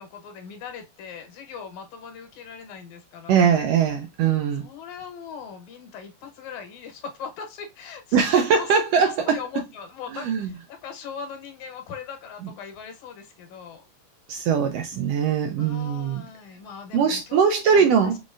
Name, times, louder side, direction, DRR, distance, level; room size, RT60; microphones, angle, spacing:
voice 1, 0.0-3.5 4.6-8.7 9.0-13.8 15.6-17.9, left 6 dB, 80° left, 2.4 m, -40 dB
voice 2, 3.3-4.7 8.1-9.4 10.1-10.5 14.3-16.2 16.9-18.2, right 6 dB, 80° right, 1.5 m, -21 dB
5.0 x 3.9 x 2.4 m
omnidirectional pair, 3.3 m